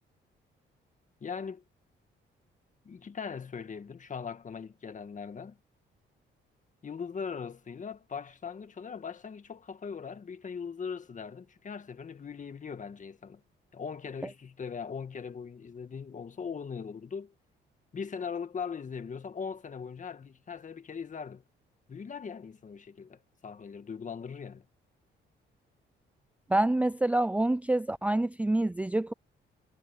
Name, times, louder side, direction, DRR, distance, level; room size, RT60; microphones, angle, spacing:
voice 1, 1.2-1.6 2.9-5.6 6.8-13.4 13.7-17.3 17.9-21.4 21.9-24.7, left 6 dB, 40° left, 1.8 m, -40 dB
voice 2, 26.5-29.1, right 2 dB, 5° right, 0.4 m, -27 dB
cardioid pair, 90°, 20 cm